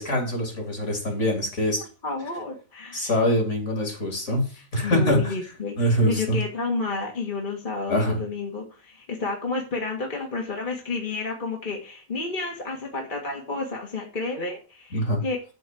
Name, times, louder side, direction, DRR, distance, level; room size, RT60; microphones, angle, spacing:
voice 1, 0.0-1.8 2.9-5.3 5.8-6.4 7.9-8.2 14.9-15.2, equal, 50° left, 2 dB, 3.4 m, -24 dB
voice 2, 2.0-3.2 4.5-15.4, left 3 dB, 35° left, 0 dB, 1.8 m, -31 dB
12.0 x 4.2 x 7.6 m, 0.37 s
omnidirectional pair, 1.6 m